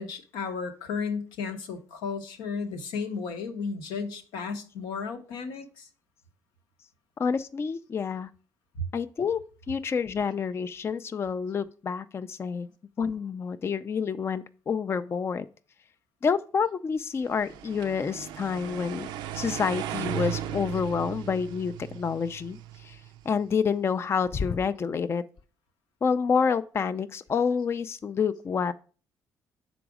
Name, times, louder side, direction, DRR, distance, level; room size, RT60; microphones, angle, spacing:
voice 1, 0.0-5.9 8.8-8.9, left 5 dB, 90° left, 0.8 m, -34 dB
voice 2, 7.2-8.3 8.9-9.4 9.7-12.7 13.0-15.5 16.2-23.0 23.3-25.2 26.0-28.7, left 6 dB, 35° left, 0.3 m, -28 dB
sound 1, 17.3-23.4, right 11 dB, 85° right, 0.4 m, -37 dB
5.9 x 4.0 x 4.8 m
supercardioid pair, 70°, 8 cm